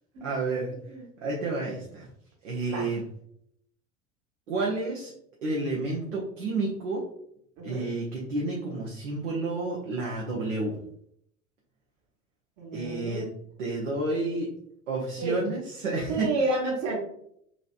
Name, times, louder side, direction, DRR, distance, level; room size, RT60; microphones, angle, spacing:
voice 1, 0.2-0.7 1.2-2.1 2.4-3.0 4.5-5.1 5.4-7.0 7.6-10.8 12.7-13.3 13.6-14.5 14.9-16.3, right 2 dB, 70° right, -4 dB, 0.8 m, -30 dB
voice 2, 7.6-7.9 12.6-13.3 15.2-15.5 16.1-17.0, right 2 dB, 45° right, -2 dB, 1.3 m, -30 dB
3.0 x 2.7 x 2.5 m, 0.70 s
figure-of-eight pair, 75°, 39 cm